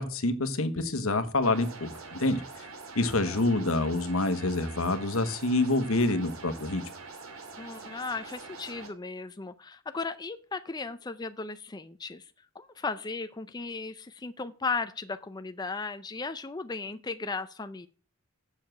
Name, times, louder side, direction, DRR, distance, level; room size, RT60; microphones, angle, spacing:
voice 1, 0.0-2.4 2.9-6.8, left 2 dB, 80° left, 11 dB, 1.2 m, -27 dB
sound 1, 1.4-8.9, right 4 dB, 90° right, 2.4 m, -45 dB
voice 2, 7.6-17.9, left 4 dB, 20° left, 10 dB, 0.5 m, -36 dB
7.3 x 7.0 x 7.6 m, 0.38 s
head